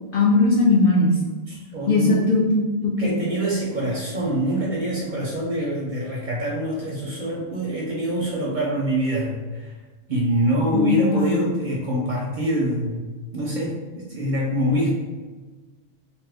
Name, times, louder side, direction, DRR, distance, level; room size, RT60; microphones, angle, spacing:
voice 1, 0.1-1.2 1.9-3.1 10.7-11.5, left 2 dB, 60° left, -4 dB, 0.6 m, -19 dB
voice 2, 1.5-2.3 3.0-9.7 10.1-13.0 13.3-14.9, equal, 50° right, -3 dB, 0.6 m, -25 dB
2.8 x 2.5 x 3.4 m, 1.3 s
omnidirectional pair, 1.3 m